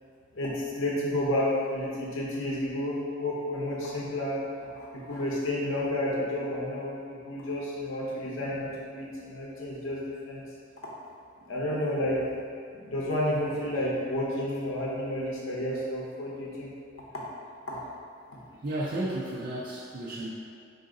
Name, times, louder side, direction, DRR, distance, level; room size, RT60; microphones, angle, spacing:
voice 1, 0.3-7.0 7.3-10.4 11.5-12.2 12.7-16.7 17.7-17.8 18.3-18.4, left 1 dB, 80° left, -5 dB, 0.7 m, -31 dB
voice 2, 18.6-20.3, right 1 dB, 45° right, -6 dB, 0.4 m, -33 dB
4.9 x 2.6 x 3.7 m, 2.2 s
head